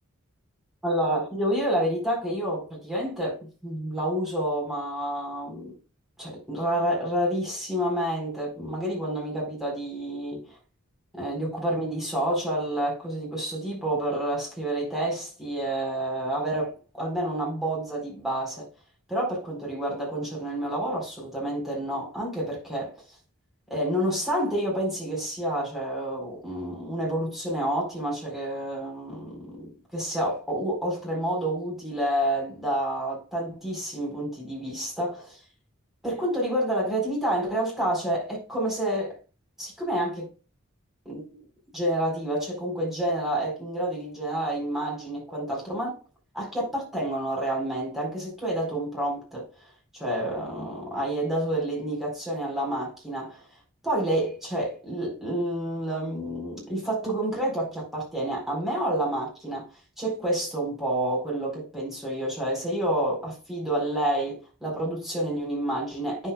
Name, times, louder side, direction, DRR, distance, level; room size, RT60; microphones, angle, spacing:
voice 1, 0.8-5.7 6.2-10.6 11.1-18.7 19.1-22.9 23.7-35.4 36.0-39.2 39.6-40.3 41.0-41.4 41.7-46.0 46.3-49.5 49.9-53.4 53.8-59.7 60.0-66.3, right 1 dB, ahead, 4.3 m, -29 dB
9.3 x 7.0 x 2.3 m
head